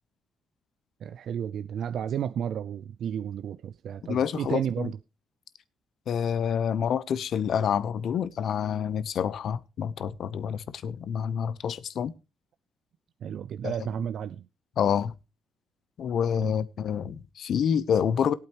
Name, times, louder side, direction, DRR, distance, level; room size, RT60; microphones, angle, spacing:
voice 1, 1.0-5.0 13.2-14.5 16.4-16.5, right 9 dB, 65° right, 0.5 m, -32 dB
voice 2, 4.1-4.9 6.1-12.1 13.6-13.7 14.8-15.1 16.0-18.3, left 8 dB, 65° left, 0.8 m, -27 dB
18.0 x 8.7 x 3.0 m
cardioid pair, 90°, 0 cm